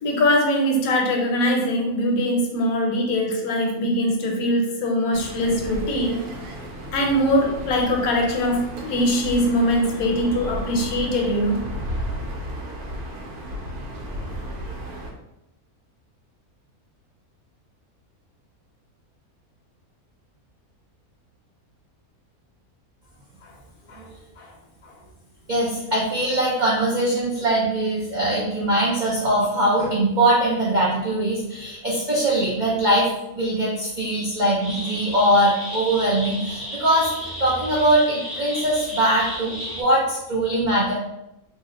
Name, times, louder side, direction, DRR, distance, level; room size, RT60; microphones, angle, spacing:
voice 1, 0.0-6.2 6.9-11.6 23.4-23.5 23.9-24.0 24.4-24.5 24.8-24.9, equal, 75° left, 1 dB, 1.1 m, -22 dB
sound 1, 5.1-15.1, equal, 90° right, 1.1 m, -34 dB
voice 2, 25.5-33.1 33.3-37.1 37.4-40.9, right 1 dB, 65° right, -5 dB, 0.4 m, -21 dB
sound 2, 34.6-39.8, equal, ahead, 0.4 m, -33 dB
2.8 x 2.1 x 3.5 m, 0.90 s
omnidirectional pair, 1.6 m